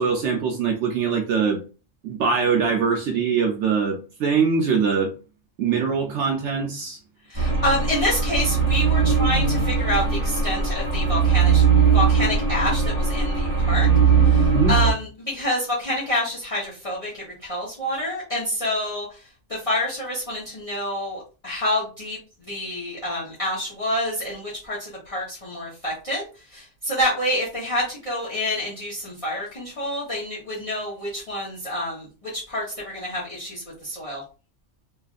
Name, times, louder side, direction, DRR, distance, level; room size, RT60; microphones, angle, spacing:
voice 1, 0.0-1.6 2.0-5.1 5.6-7.0 14.5-14.8, right 5 dB, 70° right, 1 dB, 0.9 m, -22 dB
voice 2, 7.3-11.6 11.9-13.9 14.2-19.2 19.5-22.2 22.5-34.2, left 1 dB, 30° left, -8 dB, 1.0 m, -27 dB
sound 1, 7.3-14.9, right 5 dB, 20° right, 1.1 m, -20 dB
3.1 x 2.4 x 2.4 m, 0.34 s
omnidirectional pair, 1.3 m